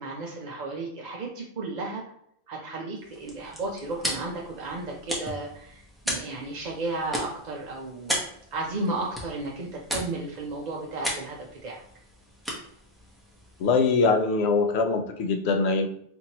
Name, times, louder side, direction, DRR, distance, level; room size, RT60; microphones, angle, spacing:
voice 1, 0.0-2.0 2.5-8.2 8.5-11.8, right 2 dB, 50° right, -2 dB, 0.7 m, -34 dB
sound 1, 3.0-14.2, equal, ahead, 0.9 m, -37 dB
voice 2, 13.6-15.9, left 4 dB, 85° left, 6 dB, 0.9 m, -23 dB
4.4 x 2.9 x 2.9 m, 0.71 s
omnidirectional pair, 1.1 m